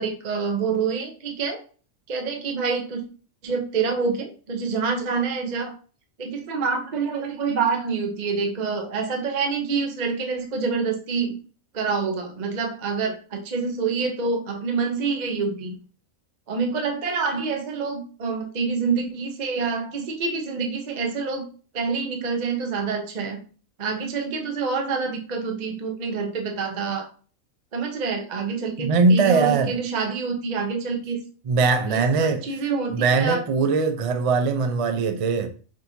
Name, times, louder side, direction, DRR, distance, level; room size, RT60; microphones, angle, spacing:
voice 1, 0.0-1.6 2.1-3.0 3.4-5.7 6.2-11.4 11.7-15.8 16.5-21.5 21.7-23.4 23.8-27.1 27.7-31.2 31.9-33.4, right 5 dB, 40° right, 0.7 m, -27 dB
voice 2, 28.8-29.8 31.4-35.5, right 4 dB, 60° right, 0.3 m, -21 dB
6.0 x 2.9 x 2.7 m
omnidirectional pair, 1.4 m